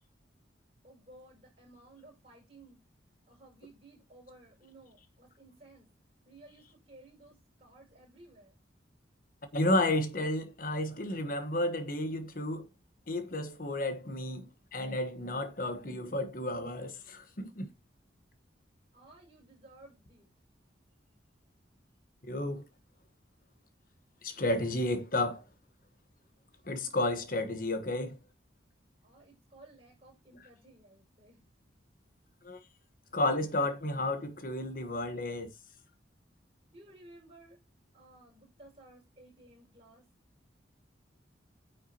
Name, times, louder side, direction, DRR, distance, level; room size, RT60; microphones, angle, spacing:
voice 1, 0.8-2.8 3.3-5.9 6.2-8.6 18.9-20.3 29.0-31.4 36.7-37.6 37.9-40.1, right 2 dB, 30° right, 5.2 m, -56 dB
voice 2, 9.5-12.7 13.1-17.7 22.2-22.6 24.2-25.4 26.6-28.2 32.4-32.6 33.1-35.5, left 1 dB, 50° left, 1.2 m, -32 dB
9.3 x 5.7 x 2.9 m
head